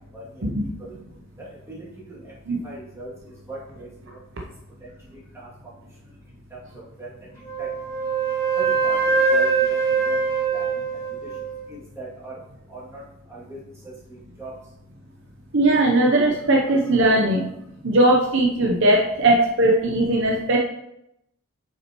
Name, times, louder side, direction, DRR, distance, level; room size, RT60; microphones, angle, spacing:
voice 1, 0.4-0.7 2.5-2.6 15.5-17.5 17.8-20.6, right 1 dB, 55° right, 0 dB, 0.7 m, -19 dB
voice 2, 1.4-1.8 2.6-3.1 3.5-3.9 7.0-7.1 7.6-7.7 8.6-9.0 9.3-9.8 10.1-10.2 10.5-10.7 11.7-12.3 12.7-12.8 13.3-13.6 14.4-14.5, right 2 dB, 10° right, -8 dB, 2.3 m, -37 dB
Wind instrument woodwind instrument, 7.4-11.6, right 5 dB, 15° left, 2.3 m, -23 dB
7.6 x 5.9 x 3.0 m, 0.83 s
head